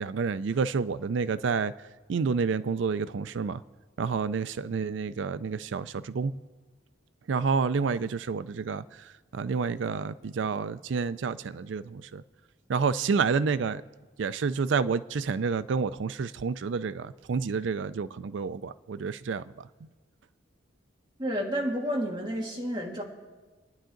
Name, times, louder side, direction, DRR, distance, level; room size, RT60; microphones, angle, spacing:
voice 1, 0.0-1.7 2.1-3.6 4.0-6.3 7.3-8.8 9.3-12.2 12.7-13.8 14.2-19.4, right 5 dB, 70° right, 14 dB, 0.4 m, -29 dB
voice 2, 21.2-23.0, equal, 20° right, -3 dB, 2.5 m, -30 dB
30.0 x 10.0 x 3.8 m, 1.3 s
head